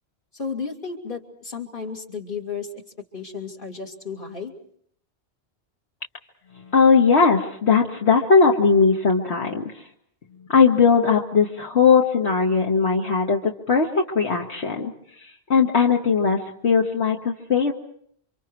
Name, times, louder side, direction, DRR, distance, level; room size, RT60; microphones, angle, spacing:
voice 1, 0.3-2.7 3.1-4.5, left 5 dB, 50° left, 2 dB, 3.1 m, -33 dB
voice 2, 6.7-9.8 10.5-14.9 15.2-17.7, left 5 dB, 70° left, 0 dB, 2.0 m, -19 dB
29.5 x 26.0 x 4.7 m, 0.63 s
omnidirectional pair, 1.2 m